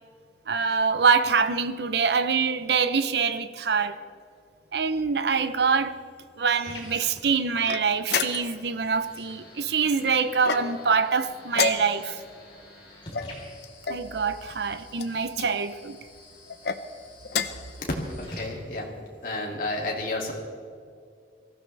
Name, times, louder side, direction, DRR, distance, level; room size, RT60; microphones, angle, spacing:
voice 1, 0.5-4.0 4.7-6.0 6.4-12.2 13.9-16.0, right 5 dB, 70° right, 0.7 m, -25 dB
sound 1, 5.3-19.3, left 1 dB, 30° left, 3.9 m, -48 dB
sound 2, 7.6-8.7 10.4-11.0 11.5-12.2 13.1-14.1 14.9-15.5 16.5-16.8 17.2-17.7, left 6 dB, 65° left, 0.7 m, -30 dB
voice 2, 18.1-18.9 19.2-20.3, left 2 dB, 50° left, 2.6 m, -31 dB
23.0 x 15.0 x 3.4 m
head